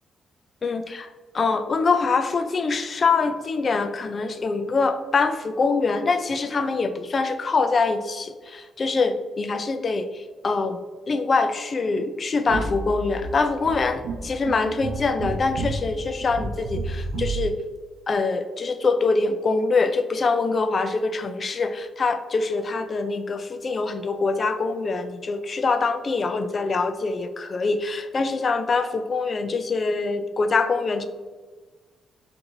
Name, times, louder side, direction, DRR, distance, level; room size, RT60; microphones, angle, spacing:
voice 1, 0.6-1.1 1.3-10.8 11.1-17.6 18.1-31.1, left 4 dB, 30° left, 9 dB, 0.3 m, -24 dB
sound 1, 12.5-17.5, right 2 dB, 75° right, 0.5 m, -31 dB
4.6 x 2.6 x 3.8 m, 1.3 s
cardioid pair, 165°, 0 cm